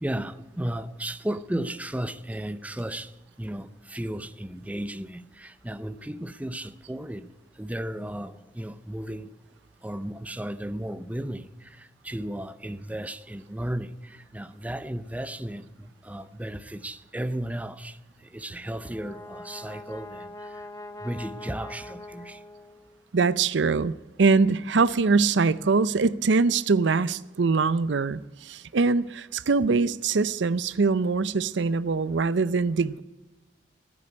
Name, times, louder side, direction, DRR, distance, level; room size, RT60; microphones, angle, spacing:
voice 1, 0.0-3.1 3.4-7.3 7.6-9.3 9.8-18.0 18.3-20.3 21.0-22.4, right 1 dB, 10° right, 0.5 m, -34 dB
Brass instrument, 18.6-23.1, left 2 dB, 20° left, 0.8 m, -43 dB
voice 2, 23.1-23.9 24.2-33.0, right 4 dB, 70° right, 0.5 m, -23 dB
15.0 x 8.5 x 9.6 m
head